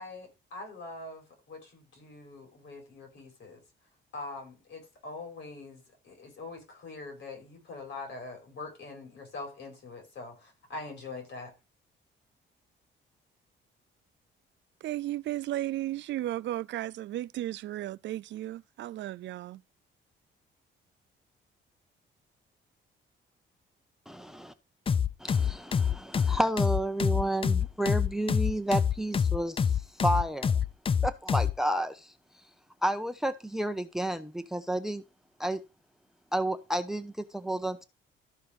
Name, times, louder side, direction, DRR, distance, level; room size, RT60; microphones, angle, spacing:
voice 1, 0.0-3.6 4.1-11.5, left 3 dB, 65° left, 5.0 m, -43 dB
voice 2, 14.8-19.6, right 14 dB, 65° right, 0.4 m, -34 dB
voice 3, 24.1-24.5 25.2-30.5 31.0-32.1 32.8-35.0 35.4-35.6 36.3-37.9, right 1 dB, ahead, 0.8 m, -31 dB
sound 1, 24.9-31.6, left 7 dB, 25° left, 0.4 m, -26 dB
13.0 x 4.4 x 5.2 m
cardioid pair, 90°, 20 cm